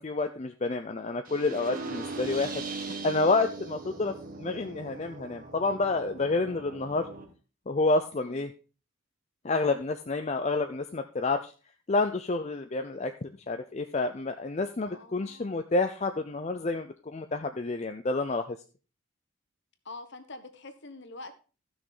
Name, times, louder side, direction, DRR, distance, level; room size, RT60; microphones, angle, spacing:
voice 1, 0.0-2.7 3.0-7.1 7.7-8.5 9.4-11.5 11.9-18.6, left 3 dB, 30° left, 7 dB, 0.5 m, -29 dB
sound 1, 1.3-7.2, right 3 dB, 40° right, 1.5 m, -40 dB
voice 2, 14.8-15.6 19.8-21.3, left 2 dB, 55° left, 9 dB, 1.3 m, -45 dB
15.0 x 6.1 x 3.9 m, 0.34 s
head